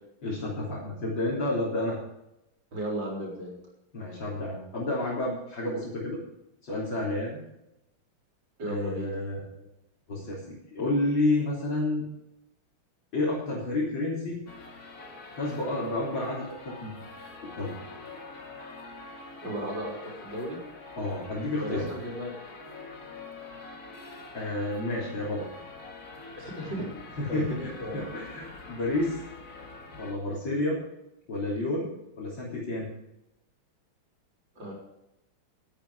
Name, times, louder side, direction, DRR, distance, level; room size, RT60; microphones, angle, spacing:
voice 1, 0.2-2.0 3.9-6.2 6.6-7.4 8.7-9.7 10.1-12.1 13.1-14.4 15.4-17.3 17.6-17.7 21.0-21.9 24.3-25.4 27.2-29.2 30.0-30.8 31.3-31.9 32.2-32.9, left 2 dB, 60° left, -7 dB, 4.4 m, -30 dB
voice 2, 2.7-3.6 8.6-9.1 19.4-20.6 21.6-22.3 26.4-26.9 27.3-28.1 34.6-34.7, right 1 dB, 60° right, -2 dB, 4.7 m, -35 dB
sound 1, 14.5-30.1, left 3 dB, 45° left, 2.3 m, -45 dB
12.5 x 12.0 x 4.9 m, 0.88 s
omnidirectional pair, 2.3 m